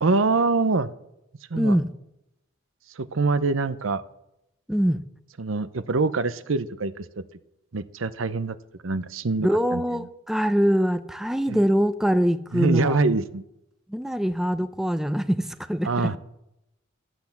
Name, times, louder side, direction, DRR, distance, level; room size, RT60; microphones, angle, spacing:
voice 1, 0.0-0.9 1.5-1.8 3.0-4.0 5.4-7.2 7.7-8.6 8.8-9.8 12.5-13.4 15.8-16.2, right 3 dB, 85° right, 15 dB, 0.7 m, -24 dB
voice 2, 1.6-1.9 4.7-5.0 9.4-13.2 13.9-16.1, equal, ahead, 11 dB, 0.5 m, -23 dB
13.0 x 8.0 x 7.1 m, 0.84 s
head